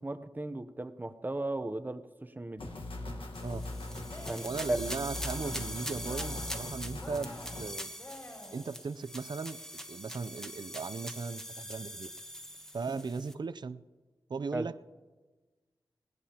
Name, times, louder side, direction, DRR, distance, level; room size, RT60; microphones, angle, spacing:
voice 1, 0.0-2.7 4.3-4.8 12.9-13.0 14.5-14.7, right 2 dB, 20° right, 10 dB, 0.7 m, -36 dB
sound 1, 2.6-7.7, left 2 dB, 80° left, 1.4 m, -41 dB
sound 2, 3.3-13.3, equal, 5° left, 1.2 m, -42 dB
Cheering, 4.0-4.6 5.0-5.7 6.0-6.6 7.0-8.7, left 1 dB, 30° left, 6.2 m, -49 dB
voice 2, 4.4-7.9 8.5-9.6 9.9-12.1 12.7-13.8 14.3-14.8, right 4 dB, 55° right, 14 dB, 0.5 m, -38 dB
20.5 x 18.0 x 2.9 m, 1.3 s
wide cardioid pair, 90°, 9 cm